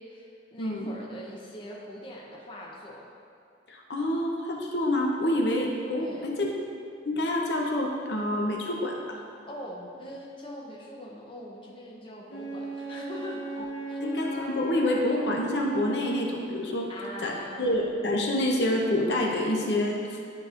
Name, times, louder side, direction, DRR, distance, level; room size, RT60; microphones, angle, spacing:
voice 1, 0.0-3.0 6.0-6.3 9.5-13.4 13.9-14.0 16.9-17.7, left 1 dB, 25° left, -3 dB, 0.7 m, -42 dB
voice 2, 0.6-0.9 3.7-6.5 7.1-9.2 14.0-16.9 17.2-20.3, left 1 dB, 60° left, 0 dB, 0.8 m, -27 dB
Wind instrument woodwind instrument, 12.3-16.7, right 2 dB, 80° left, 1.2 m, -37 dB
10.5 x 5.9 x 2.5 m, 2.4 s
head